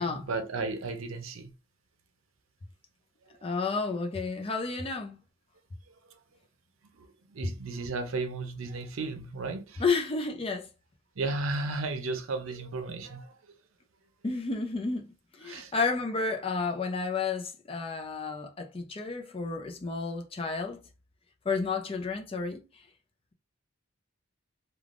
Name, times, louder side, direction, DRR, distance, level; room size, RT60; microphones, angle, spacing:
voice 1, 0.0-1.5 6.8-9.8 11.2-13.4 15.4-15.7, right 3 dB, 85° right, 0.6 m, -34 dB
voice 2, 3.4-5.2 9.8-10.7 14.2-20.8 21.5-22.6, left 4 dB, 30° left, 0.5 m, -31 dB
3.3 x 2.3 x 2.4 m
head